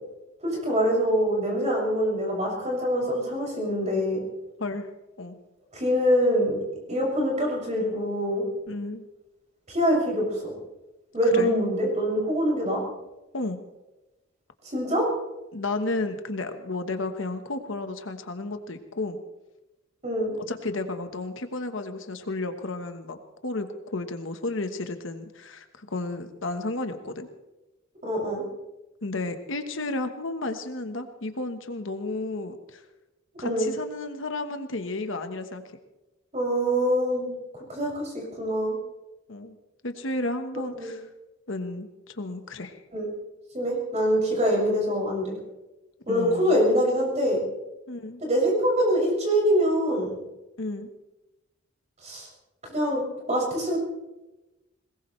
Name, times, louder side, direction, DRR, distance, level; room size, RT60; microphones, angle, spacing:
voice 1, 0.4-4.2 5.7-6.6 6.9-8.4 9.7-10.5 11.1-12.8 14.7-15.0 20.0-20.3 28.0-28.5 33.4-33.7 36.3-37.3 37.7-38.8 40.8-40.9 42.9-43.1 43.5-45.4 46.1-47.4 48.2-50.2 52.0-52.3 52.7-53.8, equal, 35° right, -2 dB, 6.7 m, -24 dB
voice 2, 8.7-9.1 11.3-11.5 13.3-13.6 15.5-19.2 20.4-23.7 23.9-27.3 29.0-32.8 33.4-35.6 39.3-39.6 39.8-41.0 41.5-42.8 46.1-46.6 47.9-48.2 50.6-50.9, left 2 dB, 65° left, 7 dB, 1.3 m, -32 dB
22.0 x 19.5 x 3.3 m, 1.0 s
head